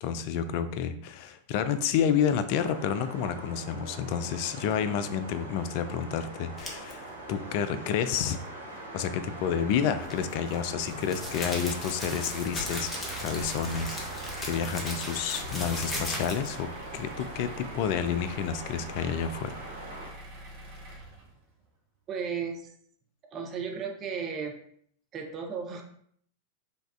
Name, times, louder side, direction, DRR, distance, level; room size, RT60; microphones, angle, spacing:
voice 1, 0.0-8.4 8.9-19.6, left 8 dB, 45° left, 11 dB, 0.3 m, -30 dB
sound 1, 2.5-20.1, right 1 dB, 85° right, 0.8 m, -42 dB
sound 2, 6.6-6.9 10.0-16.6, left 1 dB, 15° left, 1.0 m, -37 dB
sound 3, 9.3-21.6, right 3 dB, 50° right, 1.3 m, -47 dB
voice 2, 22.1-22.7 23.3-24.5 25.1-25.8, right 6 dB, 30° right, 2 dB, 0.5 m, -34 dB
5.2 x 2.3 x 2.5 m, 0.64 s
figure-of-eight pair, 90°, 0 cm